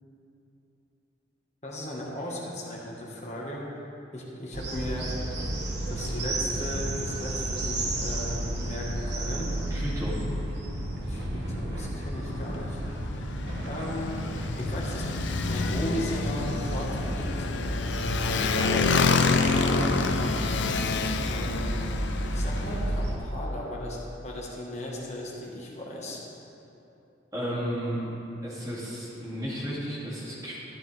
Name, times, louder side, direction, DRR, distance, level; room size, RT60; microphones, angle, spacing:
voice 1, 1.6-5.2 5.9-9.6 11.1-12.8 13.1-14.1 14.5-15.1 15.5-17.9 18.2-20.2 21.3-21.9 22.2-26.2, left 1 dB, 35° left, -3 dB, 1.4 m, -36 dB
sound 1, 4.5-23.2, right 1 dB, 65° right, 1.3 m, -32 dB
voice 2, 9.7-10.2 27.3-28.0 28.4-30.6, equal, 20° right, -8 dB, 2.5 m, -33 dB
Motorcycle, 12.2-22.9, left 4 dB, 75° left, 0.5 m, -28 dB
13.5 x 9.9 x 3.4 m, 2.9 s
head